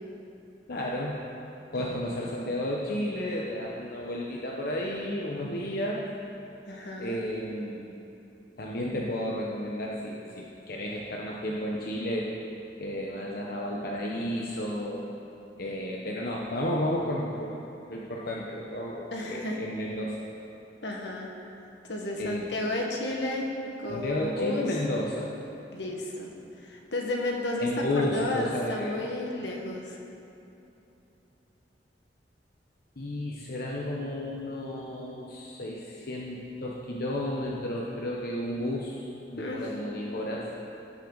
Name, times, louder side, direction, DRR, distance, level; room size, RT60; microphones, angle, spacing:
voice 1, 0.7-1.2 1.7-6.1 7.0-7.9 8.6-12.4 12.8-15.1 15.6-17.6 17.9-20.2 22.2-22.6 23.9-25.3 27.6-29.0 33.0-40.5, left 1 dB, 60° left, -3 dB, 0.9 m, -32 dB
voice 2, 6.7-7.2 19.1-19.6 20.8-21.3 21.9-23.5 23.8-24.6 25.7-26.3 26.6-30.0 39.4-39.6, left 1 dB, 80° left, 0 dB, 1.5 m, -32 dB
16.0 x 7.5 x 4.0 m, 2.8 s
head